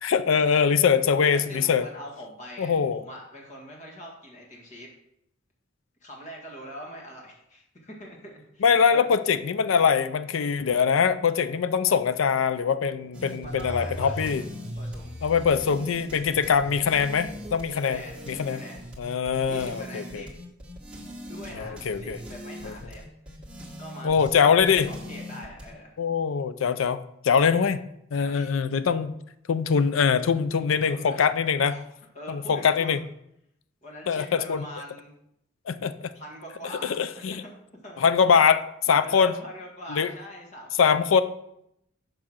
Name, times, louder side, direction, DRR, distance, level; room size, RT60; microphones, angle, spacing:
voice 1, 0.0-1.8 2.6-3.0 8.6-14.4 15.2-18.6 19.0-20.2 21.6-22.2 22.6-22.7 24.0-24.9 26.0-27.0 27.2-27.8 28.1-29.1 29.5-31.7 32.3-33.0 34.1-34.6 35.7-36.1 36.8-37.4 38.0-39.3 39.9-40.1 40.8-41.2, left 6 dB, 85° left, 13 dB, 0.4 m, -23 dB
voice 2, 1.3-4.9 6.0-9.1 13.4-14.4 14.8-15.1 17.1-17.3 17.7-18.8 19.5-20.3 21.2-23.4 23.8-24.5 24.9-25.9 27.5-27.7 28.1-28.5 30.7-31.2 31.7-33.0 33.8-35.1 36.1-37.0 37.2-37.5 37.8-38.1 39.0-41.1, equal, 40° left, -1 dB, 1.8 m, -43 dB
sound 1, 13.1-25.7, equal, 5° right, 1.6 m, -40 dB
5.8 x 5.1 x 6.4 m, 0.77 s
head